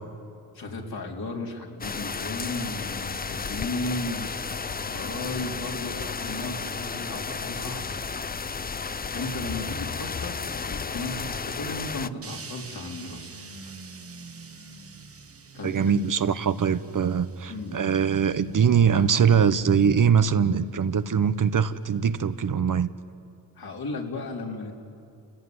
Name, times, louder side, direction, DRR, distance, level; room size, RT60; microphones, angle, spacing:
voice 1, 0.5-4.3 4.8-7.9 9.1-10.4 10.6-13.7 15.5-15.9 17.5-17.8 23.6-24.7, left 2 dB, 60° left, 0 dB, 3.9 m, -35 dB
sound 1, 1.8-12.1, left 5 dB, 20° left, 0.6 m, -33 dB
sound 2, 12.2-22.4, right 4 dB, 35° right, 1.3 m, -45 dB
voice 2, 15.6-22.9, right 7 dB, 50° right, 12 dB, 1.0 m, -22 dB
30.0 x 17.0 x 9.6 m, 2.5 s
cardioid pair, 65°, 41 cm